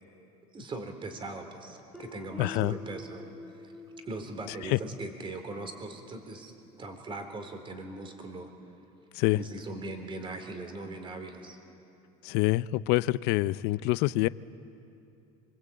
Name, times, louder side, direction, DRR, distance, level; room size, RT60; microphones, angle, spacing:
voice 1, 0.5-3.7 4.0-6.5 6.8-8.5 9.4-11.6, right 2 dB, 30° right, 5 dB, 3.8 m, -40 dB
Guitar, 1.9-6.6, left 1 dB, ahead, 2.4 m, -48 dB
voice 2, 2.4-2.7 4.7-4.8 9.1-9.4 12.2-14.3, left 19 dB, 70° left, 18 dB, 0.6 m, -26 dB
26.5 x 22.5 x 8.7 m, 2.8 s
supercardioid pair, 110°, 18 cm